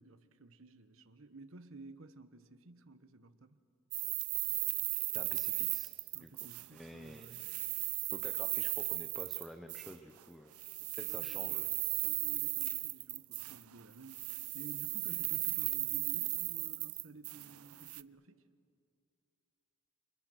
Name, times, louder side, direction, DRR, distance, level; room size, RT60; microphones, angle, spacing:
voice 1, 0.0-3.6 6.1-7.4 11.0-11.6 12.0-18.4, right 3 dB, 65° right, 1.2 m, -54 dB
sound 1, 3.9-6.9 7.2-10.0 10.5-13.8 14.1-18.0, right 21 dB, 80° right, 0.5 m, -36 dB
voice 2, 5.1-5.9 6.2-6.3 6.7-7.5 8.1-10.6 11.0-11.8, equal, ahead, 0.8 m, -50 dB
29.5 x 25.0 x 6.5 m
head